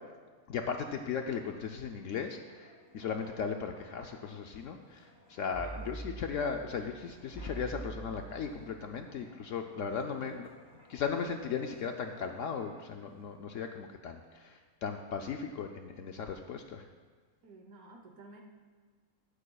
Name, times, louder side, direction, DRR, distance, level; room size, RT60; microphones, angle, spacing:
voice 1, 0.5-10.5 10.9-16.9, left 6 dB, 65° left, 4 dB, 0.9 m, -37 dB
Wind, 0.9-13.3 13.6-13.8, right 2 dB, 15° right, 3.0 m, -50 dB
voice 2, 17.4-18.4, right 2 dB, 75° right, 3 dB, 1.4 m, -55 dB
15.0 x 11.5 x 2.3 m, 1.5 s
omnidirectional pair, 1.5 m